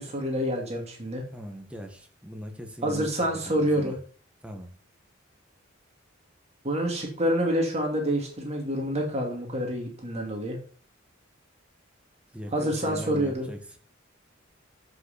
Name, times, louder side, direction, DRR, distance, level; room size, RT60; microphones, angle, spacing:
voice 1, 0.0-1.2 2.8-4.0 6.6-10.6 12.5-13.5, equal, 35° right, 2.5 m, -27 dB
voice 2, 1.3-3.9 4.4-4.7 12.3-13.6, equal, 5° right, 1.6 m, -40 dB
13.0 x 5.8 x 4.3 m
head